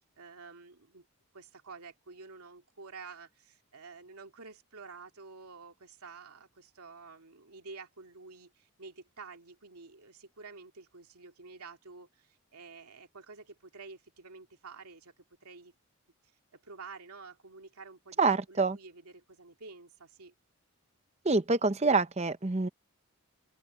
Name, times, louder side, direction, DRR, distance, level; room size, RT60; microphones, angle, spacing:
voice 1, 0.2-1.1 1.3-15.7 16.5-18.2 18.5-20.3, right 4 dB, 90° right, 2.5 m, -50 dB
voice 2, 18.2-18.8 21.2-22.7, right 3 dB, 30° right, 0.8 m, -26 dB
open air
head